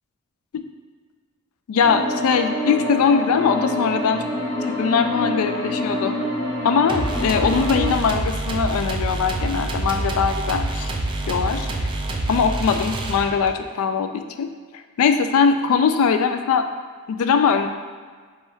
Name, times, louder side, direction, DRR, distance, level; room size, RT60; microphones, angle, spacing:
voice 1, 1.7-4.2 4.7-6.1 6.6-10.9 11.3-11.7 12.3-14.5 14.7-16.7 17.1-17.7, left 6 dB, 75° left, 7 dB, 0.3 m, -21 dB
sound 1, 1.8-7.9, left 1 dB, 20° left, 0.9 m, -26 dB
sound 2, 6.9-13.6, right 2 dB, 25° right, 0.3 m, -26 dB
5.4 x 2.4 x 3.1 m, 1.5 s
head